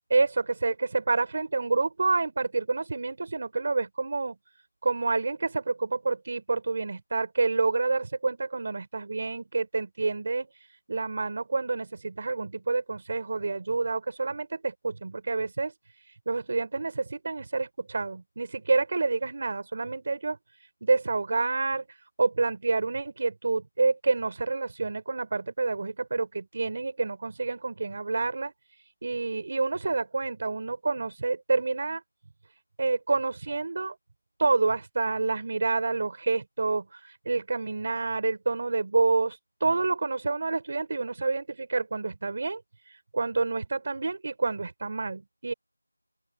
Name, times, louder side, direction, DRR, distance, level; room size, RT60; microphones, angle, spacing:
voice 1, 0.1-4.4 4.8-32.0 32.8-33.9 34.4-45.5, right 3 dB, 25° right, 6.4 m, -28 dB
open air
figure-of-eight pair, 180°, 0 cm